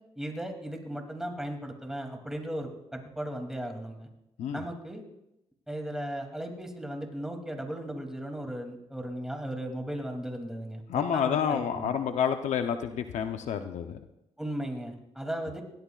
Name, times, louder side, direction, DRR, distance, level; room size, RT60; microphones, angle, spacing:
voice 1, 0.2-4.1 4.5-5.0 5.7-11.9 14.4-15.6, right 1 dB, 5° right, 2 dB, 2.8 m, -36 dB
voice 2, 10.9-14.0, left 8 dB, 80° left, 7 dB, 0.8 m, -29 dB
21.5 x 17.0 x 2.5 m, 0.87 s
cardioid pair, 85°, 12 cm